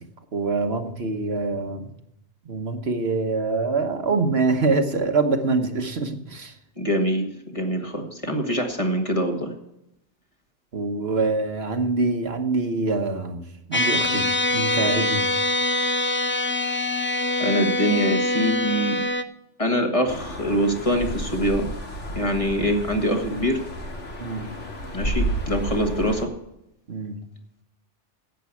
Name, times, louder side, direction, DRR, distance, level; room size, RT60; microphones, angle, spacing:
voice 1, 0.3-1.9 2.5-6.5 10.7-13.4 13.7-15.3 24.2-24.5 26.9-27.2, right 3 dB, 60° right, 6 dB, 1.4 m, -25 dB
voice 2, 6.8-7.3 7.5-9.6 16.6-16.8 17.4-19.0 19.6-21.7 22.2-23.6 24.9-26.3, equal, 30° left, 3 dB, 1.7 m, -24 dB
sound 1, 13.7-19.2, left 1 dB, 10° left, 0.6 m, -24 dB
sound 2, 20.1-26.2, equal, 90° left, 2.3 m, -31 dB
11.0 x 8.5 x 8.4 m, 0.83 s
omnidirectional pair, 1.2 m